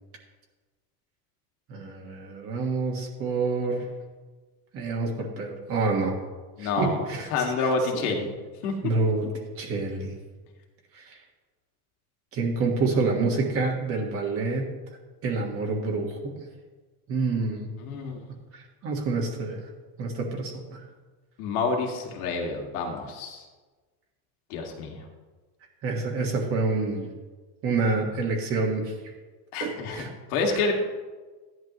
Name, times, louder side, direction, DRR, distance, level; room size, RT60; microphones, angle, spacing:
voice 1, 1.7-3.8 4.7-6.1 6.6-8.0 8.8-9.3 9.6-10.1 10.9-11.2 12.3-14.7 15.2-16.4 17.1-17.7 18.5-19.6 20.0-20.8 25.8-27.1 27.6-29.0 29.6-30.1, right 3 dB, 30° right, -1 dB, 1.6 m, -28 dB
voice 2, 6.6-7.0 7.3-8.3 8.6-8.7 17.8-18.2 21.4-23.5 24.5-25.0 29.5-30.8, left 4 dB, 80° left, 2 dB, 2.1 m, -28 dB
15.0 x 11.0 x 3.1 m, 1.3 s
cardioid pair, 170°, 44 cm